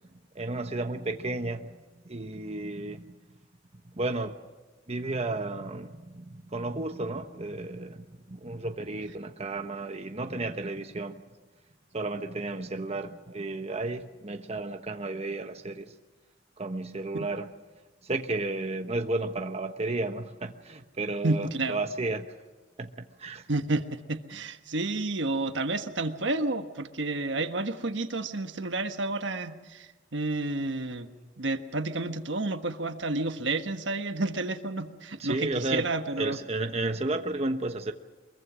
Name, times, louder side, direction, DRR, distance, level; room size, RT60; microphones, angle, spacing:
voice 1, 0.3-1.8 2.0-3.1 3.9-4.4 4.9-11.2 11.9-15.9 16.6-17.5 18.0-22.3 22.8-23.4 35.2-35.9 36.2-37.9, right 2 dB, 35° right, 6 dB, 1.1 m, -33 dB
voice 2, 21.2-21.8 23.5-31.1 31.4-36.4, right 2 dB, 70° right, 8 dB, 1.4 m, -30 dB
24.0 x 22.5 x 6.2 m, 1.3 s
head